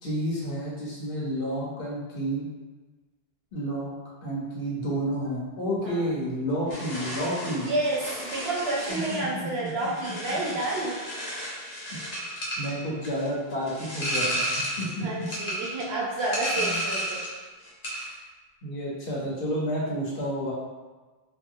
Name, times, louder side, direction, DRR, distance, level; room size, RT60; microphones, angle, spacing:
voice 1, 0.0-2.5 3.5-3.9 4.2-7.7 8.9-9.9 12.6-14.4 14.8-15.3 16.6-16.8 18.6-20.5, equal, 60° left, -6 dB, 1.0 m, -30 dB
sound 1, 6.7-17.4 17.7-18.2, equal, 85° left, 1.1 m, -33 dB
voice 2, 7.4-11.0 15.0-17.2, right 2 dB, 80° right, -3 dB, 0.9 m, -30 dB
2.8 x 2.5 x 2.6 m, 1.3 s
omnidirectional pair, 1.0 m